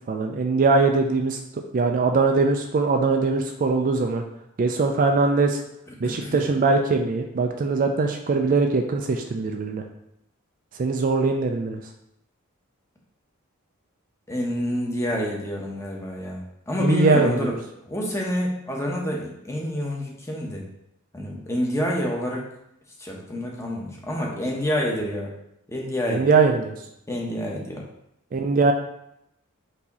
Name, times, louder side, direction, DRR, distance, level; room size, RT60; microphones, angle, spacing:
voice 1, 0.1-1.4 1.7-4.2 4.6-5.6 6.0-9.8 10.8-11.8 16.8-17.6 26.1-26.8 28.3-28.7, right 4 dB, 40° right, 4 dB, 0.3 m, -21 dB
voice 2, 6.0-6.4 14.3-17.6 17.8-20.6 21.1-22.4 23.0-25.3 25.7-26.3 27.1-27.8, equal, 15° left, -2 dB, 0.8 m, -28 dB
4.7 x 2.7 x 4.0 m, 0.79 s
head